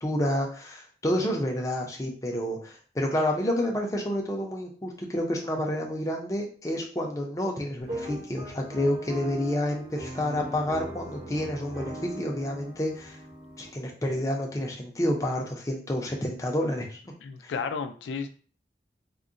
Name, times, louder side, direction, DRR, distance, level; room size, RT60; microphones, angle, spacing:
voice 1, 0.0-13.2 13.6-17.0 17.4-17.5, left 1 dB, 20° left, 0 dB, 0.4 m, -29 dB
sound 1, 7.8-13.7, right 1 dB, 35° right, 0.6 m, -39 dB
voice 2, 17.2-18.3, left 5 dB, 85° left, 7 dB, 0.3 m, -33 dB
3.6 x 2.0 x 2.5 m, 0.41 s
head